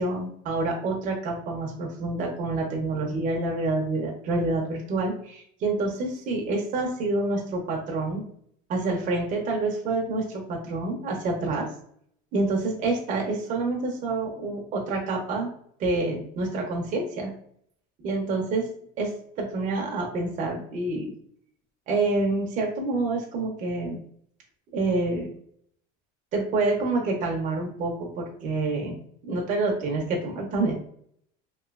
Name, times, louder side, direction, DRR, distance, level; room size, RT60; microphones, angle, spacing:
voice 1, 0.0-8.2 8.7-11.7 12.3-15.5 15.8-17.3 18.0-18.7 19.0-21.1 21.9-24.0 24.7-25.3 26.3-29.0 29.2-30.7, right 2 dB, 45° right, 0 dB, 0.7 m, -27 dB
3.0 x 2.6 x 2.4 m, 0.64 s
cardioid pair, 140°, 19 cm